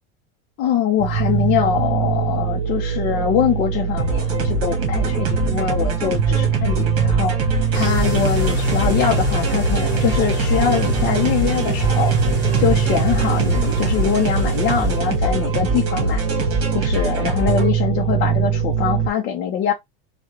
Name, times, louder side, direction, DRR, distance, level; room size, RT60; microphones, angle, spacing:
voice 1, 0.6-12.1 12.6-16.2 16.7-19.7, left 9 dB, 30° left, 0.4 m, -23 dB
sound 1, 1.0-19.1, right 8 dB, 65° right, 0.9 m, -22 dB
sound 2, 4.0-17.7, right 1 dB, 45° right, 1.4 m, -25 dB
sound 3, 7.7-15.4, left 1 dB, 10° right, 2.0 m, -26 dB
3.5 x 2.1 x 2.9 m
supercardioid pair, 165°, 33 cm